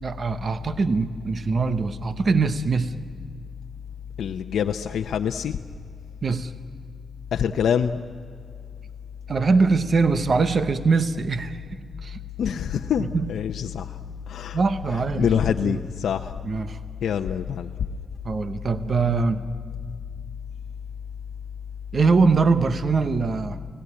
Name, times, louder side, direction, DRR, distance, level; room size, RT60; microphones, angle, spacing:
voice 1, 0.0-3.0 6.2-6.5 9.3-11.6 12.0-12.2 13.0-13.4 14.5-15.8 16.4-16.8 18.2-19.5 21.9-23.6, right 4 dB, 35° right, 12 dB, 0.9 m, -22 dB
voice 2, 4.2-5.5 7.3-8.0 12.4-13.9 14.3-14.6 15.2-16.3 17.0-17.7, left 8 dB, 75° left, 4 dB, 0.7 m, -25 dB
29.5 x 17.5 x 9.9 m, 2.3 s
wide cardioid pair, 165°, 0 cm